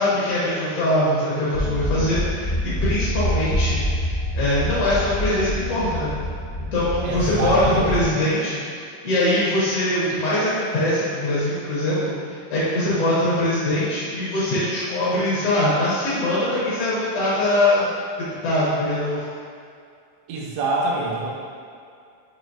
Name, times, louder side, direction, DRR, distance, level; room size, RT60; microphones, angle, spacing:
voice 1, 0.0-3.8 4.3-6.1 6.7-17.9 18.4-19.2, left 1 dB, 70° left, -9 dB, 1.5 m, -22 dB
sound 1, 1.5-8.0, equal, 45° left, 0.7 m, -26 dB
voice 2, 7.0-8.1 20.3-21.3, right 2 dB, 85° right, -3 dB, 1.3 m, -25 dB
6.2 x 2.6 x 2.6 m, 2.3 s
omnidirectional pair, 3.6 m